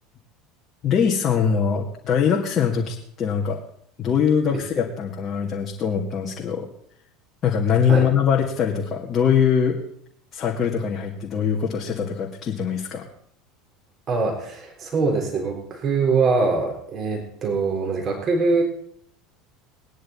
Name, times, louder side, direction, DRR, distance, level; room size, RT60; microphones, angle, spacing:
voice 1, 0.8-3.6 4.0-6.7 7.4-9.8 10.3-13.0, left 7 dB, 35° left, -1 dB, 2.0 m, -22 dB
voice 2, 14.1-18.6, right 4 dB, 35° right, 2 dB, 3.5 m, -23 dB
19.5 x 10.0 x 4.2 m, 0.66 s
figure-of-eight pair, 70°, 0 cm